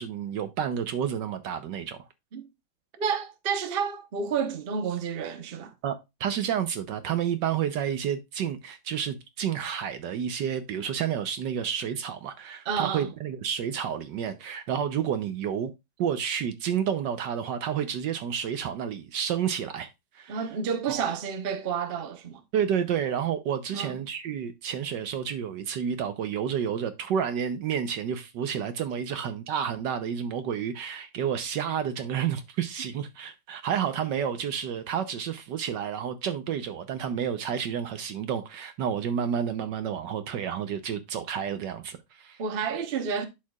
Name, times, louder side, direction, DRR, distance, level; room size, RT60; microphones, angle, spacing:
voice 1, 0.0-2.0 5.8-15.7 16.0-19.9 20.1-20.5 20.9-21.1 22.5-42.4, right 8 dB, 70° right, 1.2 m, -30 dB
voice 2, 3.0-5.7 12.7-13.1 20.3-22.4 23.7-24.0 42.4-43.2, right 6 dB, 40° right, 0.8 m, -30 dB
11.5 x 4.7 x 2.3 m
omnidirectional pair, 2.2 m